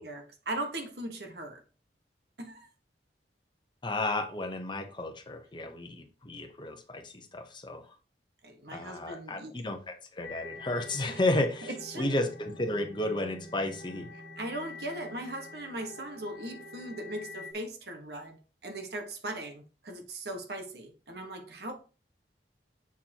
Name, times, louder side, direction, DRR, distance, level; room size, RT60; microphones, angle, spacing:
voice 1, 0.0-1.6 2.4-2.7 8.4-9.5 11.1-11.2 11.9-12.1 14.4-21.7, right 1 dB, 65° right, 1.5 m, -39 dB
voice 2, 3.8-8.0 8.7-14.1, left 2 dB, 25° left, 1.0 m, -32 dB
sound 1, 10.2-17.5, left 2 dB, 85° left, 1.1 m, -47 dB
7.2 x 6.7 x 3.0 m
head